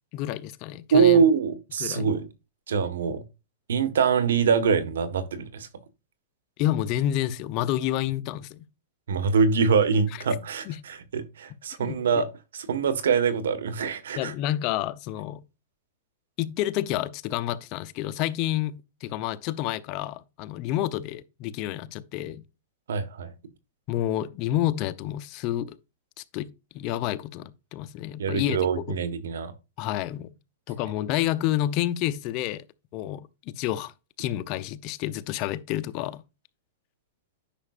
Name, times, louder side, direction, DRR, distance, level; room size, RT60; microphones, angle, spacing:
voice 1, 0.1-1.2 1.8-2.1 6.6-8.6 10.7-10.8 11.8-12.2 14.2-15.4 16.4-22.4 23.9-25.8 26.3-28.6 28.9-29.0 29.8-30.3 30.7-32.6 32.9-33.3 33.6-33.9 34.2-36.2, left 13 dB, 40° left, 0.6 m, -29 dB
voice 2, 0.9-2.3 2.7-3.2 3.7-5.7 9.1-12.3 12.5-14.3 22.9-23.3 28.2-29.5, right 6 dB, 90° right, 1.4 m, -24 dB
10.0 x 5.9 x 2.5 m
supercardioid pair, 145°, 0 cm